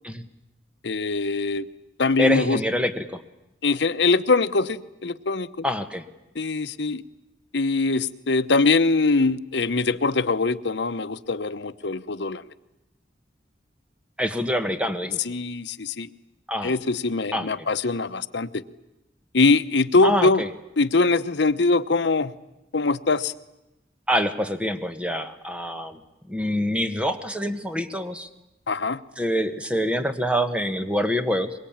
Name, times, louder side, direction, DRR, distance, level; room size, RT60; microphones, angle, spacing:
voice 1, 0.8-1.7 2.0-2.6 3.6-5.6 6.3-7.0 7.5-12.4 15.2-16.1 16.6-18.6 19.3-20.4 20.8-22.3 22.7-23.3 28.7-29.0, left 3 dB, 70° left, 10 dB, 0.9 m, -22 dB
voice 2, 2.2-3.2 5.6-6.0 14.2-15.2 16.5-16.7 17.3-17.5 20.0-20.5 24.1-26.0 26.3-28.3 29.2-31.5, equal, 5° right, 8 dB, 1.3 m, -25 dB
24.0 x 22.0 x 8.8 m, 0.96 s
head